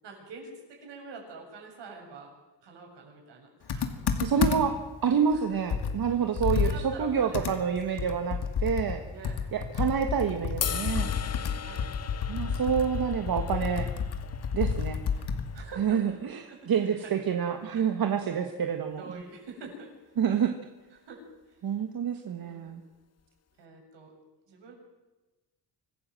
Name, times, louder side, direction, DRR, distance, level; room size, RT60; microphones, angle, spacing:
voice 1, 0.0-2.4 2.6-4.3 5.3-5.8 6.6-8.0 9.1-9.5 11.6-11.9 15.1-15.3 15.5-16.2 16.5-17.2 17.6-18.5 19.0-20.2 20.9-21.6 22.2-22.7 23.6-24.2 24.5-24.7, right 4 dB, 70° right, 1 dB, 7.4 m, -47 dB
Computer keyboard, 3.7-4.9 5.3-5.4 5.7-9.0 9.2-15.7, left 6 dB, 60° left, 2.4 m, -30 dB
voice 2, 4.2-9.0 9.5-11.1 12.3-13.9 14.5-15.0 15.8-19.0 20.2-20.5 21.6-22.8, right 7 dB, 55° right, 6 dB, 1.7 m, -28 dB
sound 1, 10.6-16.8, left 8 dB, 35° left, 0.9 m, -39 dB
25.5 x 15.0 x 7.8 m, 1.1 s
cardioid pair, 100°, 43 cm